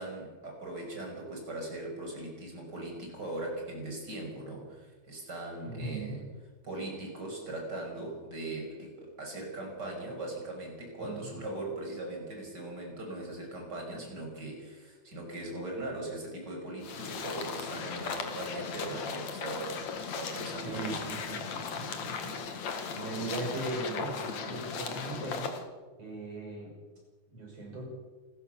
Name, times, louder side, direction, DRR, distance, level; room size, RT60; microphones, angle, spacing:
voice 1, 0.0-6.2 6.6-19.8 20.0-21.0, right 2 dB, 30° right, 0 dB, 6.5 m, -40 dB
voice 2, 5.7-6.2 11.0-11.3 20.6-25.5 26.0-26.7 27.3-27.9, right 2 dB, 50° right, -1 dB, 7.6 m, -39 dB
sound 1, 16.8-25.6, left 6 dB, 65° left, 3.1 m, -37 dB
27.5 x 14.0 x 7.0 m, 1.3 s
omnidirectional pair, 3.4 m